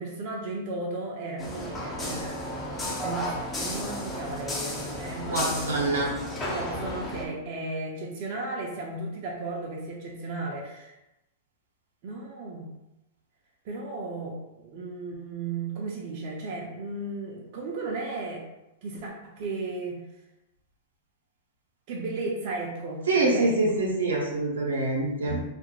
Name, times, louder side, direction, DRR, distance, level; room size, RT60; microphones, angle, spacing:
voice 1, 0.0-5.7 6.4-10.9 12.0-12.7 13.6-18.5 18.8-20.0 21.9-23.7, right 2 dB, 50° right, -2 dB, 0.5 m, -35 dB
sound 1, 1.4-7.3, left 1 dB, 20° left, 0.6 m, -33 dB
voice 2, 5.3-6.1 23.1-25.4, right 2 dB, 85° right, -2 dB, 0.7 m, -25 dB
2.4 x 2.0 x 2.9 m, 0.93 s
hypercardioid pair, 110°, 0 cm